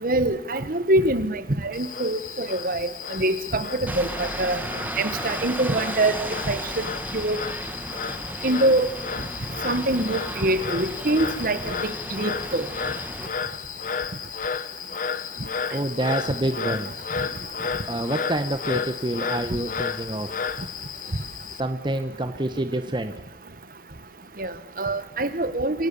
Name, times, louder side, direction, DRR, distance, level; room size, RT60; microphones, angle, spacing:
voice 1, 0.0-4.6 5.0-6.1 6.5-6.6 7.1-7.4 8.4-8.9 9.6-11.8 12.1-12.7 24.4-25.9, right 1 dB, 55° right, 12 dB, 1.4 m, -24 dB
Frog, 1.7-21.6, left 6 dB, 50° left, 0.8 m, -33 dB
sound 1, 3.9-13.3, right 1 dB, 10° right, 1.5 m, -35 dB
voice 2, 15.7-16.9 17.8-20.4 21.0-21.1 21.6-23.1, right 1 dB, 25° right, 8 dB, 0.9 m, -27 dB
25.5 x 16.0 x 7.0 m, 0.93 s
head